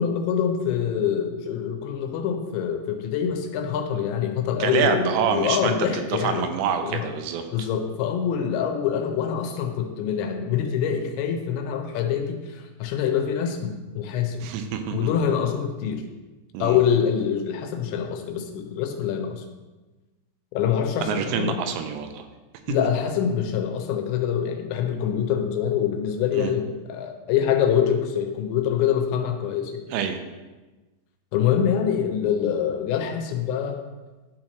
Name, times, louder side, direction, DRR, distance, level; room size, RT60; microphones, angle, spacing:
voice 1, 0.0-6.5 6.8-7.1 7.5-14.4 14.9-16.0 16.6-19.4 20.5-21.6 22.7-29.8 31.3-33.8, left 8 dB, 90° left, 5 dB, 3.0 m, -25 dB
voice 2, 4.6-7.7 14.4-15.0 16.5-16.8 21.1-22.2 26.4-26.5 29.9-30.2, right 7 dB, 85° right, 6 dB, 2.8 m, -26 dB
11.5 x 4.4 x 3.0 m, 1.2 s
omnidirectional pair, 5.1 m